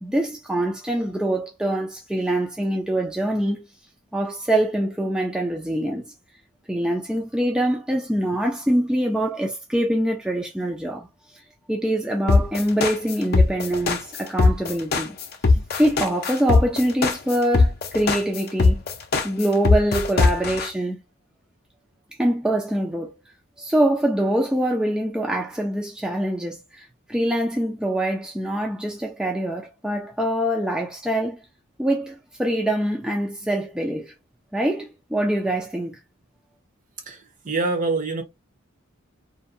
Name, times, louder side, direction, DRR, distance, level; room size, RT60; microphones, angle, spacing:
voice 1, 0.0-3.6 4.1-6.1 6.7-11.1 11.7-15.2 15.6-18.8 19.2-21.0 22.2-23.1 23.6-31.4 31.8-34.1 34.5-36.0, right 1 dB, 5° right, 0.4 m, -24 dB
sound 1, 12.3-20.7, left 3 dB, 50° left, 0.5 m, -19 dB
voice 2, 37.1-38.2, right 3 dB, 40° right, 0.7 m, -25 dB
2.6 x 2.2 x 2.6 m
head